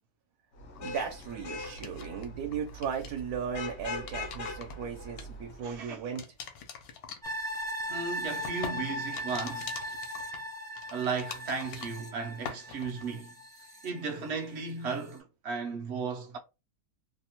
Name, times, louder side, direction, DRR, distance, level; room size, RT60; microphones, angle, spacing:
Vehicle horn car horn honking / Traffic noise roadway noise, 0.6-5.9, left 2 dB, 60° left, 0.8 m, -41 dB
sound 1, 0.8-2.3 2.5-3.2 3.8-5.8 6.2-12.2 12.5-13.0, left 7 dB, 80° left, 1.1 m, -44 dB
voice 1, 0.8-6.2, right 7 dB, 85° right, 1.1 m, -36 dB
voice 2, 5.6-6.0 7.9-9.8 10.9-13.3 13.8-16.4, right 5 dB, 65° right, 0.7 m, -35 dB
sound 2, 7.2-14.5 14.9-15.0, equal, 5° left, 0.4 m, -38 dB
2.7 x 2.0 x 2.8 m
omnidirectional pair, 1.6 m